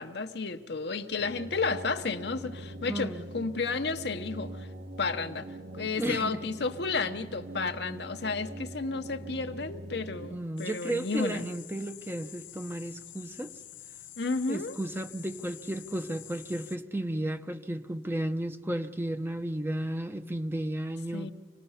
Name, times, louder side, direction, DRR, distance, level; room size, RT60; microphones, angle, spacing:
voice 1, 0.0-4.7 5.0-5.5 5.7-11.5 14.2-14.7 21.1-21.3, left 4 dB, 65° left, 0.9 m, -32 dB
sound 1, 1.2-10.3, right 1 dB, 55° right, 1.3 m, -43 dB
voice 2, 2.9-3.3 6.0-6.4 10.3-13.5 14.5-21.3, right 1 dB, 10° right, 0.7 m, -33 dB
sound 2, 10.6-16.8, left 13 dB, 90° left, 0.7 m, -48 dB
26.5 x 18.5 x 5.7 m
head